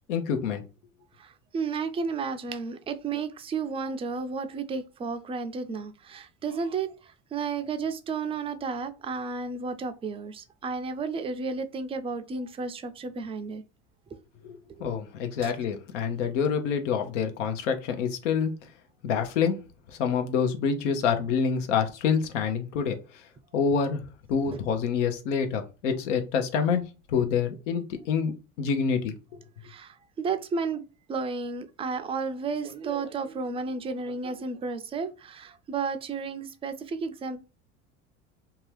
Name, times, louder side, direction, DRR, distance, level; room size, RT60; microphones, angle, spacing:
voice 1, 0.1-0.6 14.4-18.5 19.0-19.6 20.0-23.0 23.5-29.1, left 6 dB, 80° left, 0.7 m, -27 dB
voice 2, 1.2-13.6 14.1-14.2 14.8-14.9 15.4-15.5 24.5-24.6 29.6-30.8 31.1-37.4, right 4 dB, 15° right, 0.4 m, -32 dB
2.7 x 2.3 x 3.2 m
hypercardioid pair, 80°, 36 cm